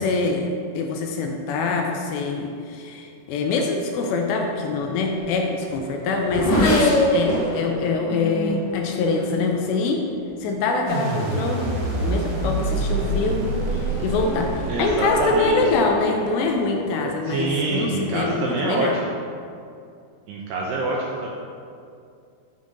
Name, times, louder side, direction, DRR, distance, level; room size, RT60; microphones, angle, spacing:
voice 1, 0.0-10.1 10.4-11.7 12.0-19.0, left 3 dB, 80° left, 2 dB, 2.6 m, -24 dB
Race car auto racing / Accelerating revving vroom, 4.6-10.5 11.3-11.7 12.1-18.0, left 1 dB, 60° left, 2.5 m, -27 dB
sound 1, 10.9-15.9, right 1 dB, 65° right, 2.2 m, -26 dB
voice 2, 14.7-15.7 17.2-19.0 20.3-21.3, right 2 dB, 85° right, -3 dB, 2.3 m, -25 dB
7.3 x 4.0 x 3.7 m, 2.4 s
omnidirectional pair, 5.1 m